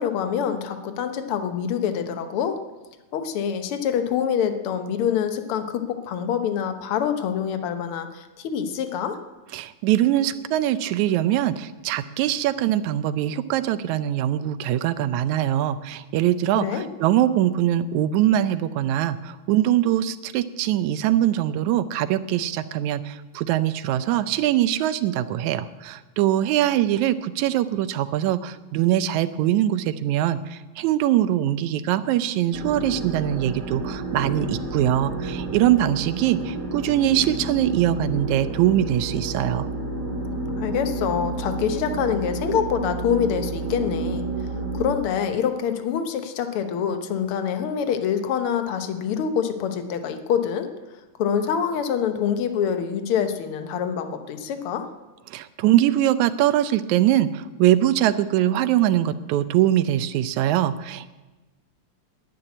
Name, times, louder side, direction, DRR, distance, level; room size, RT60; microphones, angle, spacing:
voice 1, 0.0-2.6 3.1-9.2 16.5-16.9 40.6-44.3 44.7-50.7 51.2-54.9, left 8 dB, 60° left, 8 dB, 1.6 m, -25 dB
voice 2, 9.5-39.7 55.3-61.1, right 12 dB, 80° right, 13 dB, 2.0 m, -22 dB
sound 1, 32.5-44.9, right 2 dB, 45° right, 2.7 m, -30 dB
10.5 x 10.0 x 9.7 m, 1.2 s
omnidirectional pair, 3.4 m